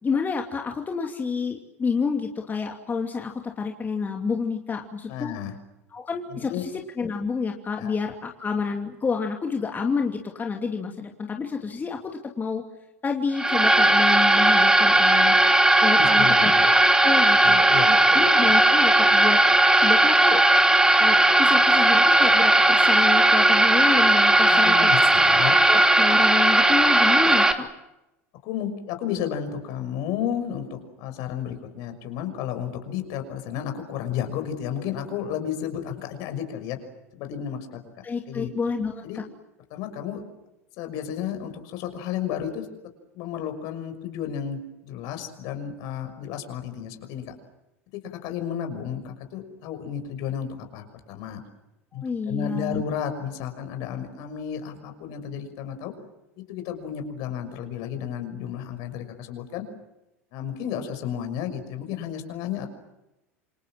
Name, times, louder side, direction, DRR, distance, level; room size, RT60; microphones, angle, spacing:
voice 1, 0.0-5.3 5.9-6.7 7.0-12.1 12.4-12.6 13.0-15.4 15.8-19.4 19.8-20.4 21.0-25.0 25.7-27.7 38.0-39.2 51.9-52.8, left 5 dB, 25° left, 3 dB, 2.8 m, -29 dB
voice 2, 5.1-5.5 6.3-6.7 7.8-7.9 16.0-16.6 17.2-18.2 24.5-25.6 27.2-27.3 28.4-36.8 37.1-37.8 38.3-38.5 39.0-39.2 39.7-40.2 40.8-42.7 43.1-47.3 48.1-51.4 51.9-55.9 56.4-59.7 60.3-62.7, left 9 dB, 60° left, 7 dB, 6.1 m, -32 dB
sound 1, 13.3-27.5, right 1 dB, 10° right, 3.0 m, -17 dB
28.5 x 26.0 x 7.6 m, 0.94 s
hypercardioid pair, 80°, 8 cm